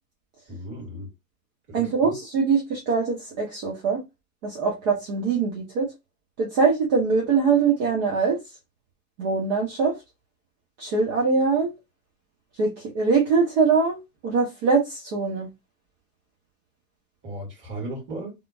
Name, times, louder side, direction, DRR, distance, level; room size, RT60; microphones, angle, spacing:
voice 1, 0.5-1.1 1.7-2.1 17.2-18.3, right 1 dB, 25° right, 2.1 m, -36 dB
voice 2, 1.7-4.0 4.4-5.9 6.4-8.4 9.2-9.9 10.8-11.7 12.6-14.0 14.2-15.5, right 5 dB, 40° right, 1.2 m, -22 dB
3.5 x 2.5 x 2.5 m
hypercardioid pair, 125°, 47 cm